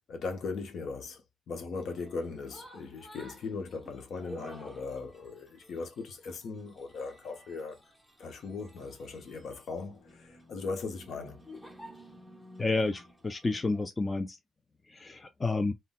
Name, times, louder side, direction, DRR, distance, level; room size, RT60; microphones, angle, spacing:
voice 1, 0.1-7.8 8.2-11.4, left 4 dB, 65° left, 0.8 m, -39 dB
sound 1, 1.8-13.8, equal, 5° left, 0.8 m, -53 dB
voice 2, 12.6-14.4 14.9-15.7, left 3 dB, 25° left, 0.3 m, -30 dB
3.8 x 2.1 x 2.2 m
cardioid pair, 90°, 0 cm